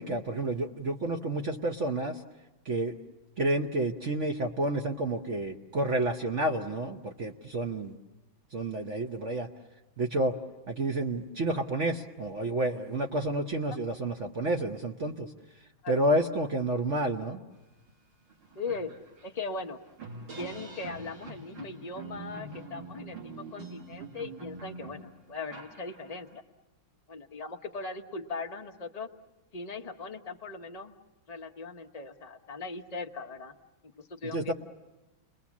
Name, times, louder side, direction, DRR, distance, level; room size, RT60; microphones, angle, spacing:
voice 1, 0.0-2.2 2.6-3.0 3.4-8.0 8.5-9.5 10.0-10.3 10.7-15.3 15.9-17.4 34.3-34.5, right 1 dB, 50° right, 3 dB, 1.0 m, -30 dB
sound 1, 17.9-18.0 18.3-26.4, right 3 dB, 65° right, 3.2 m, -45 dB
voice 2, 18.5-18.9 19.2-19.8 20.3-26.4 27.1-29.1 29.5-30.9 31.3-33.5 34.0-34.5, left 3 dB, 35° left, 3 dB, 0.7 m, -39 dB
30.0 x 21.5 x 7.3 m, 1.1 s
omnidirectional pair, 2.2 m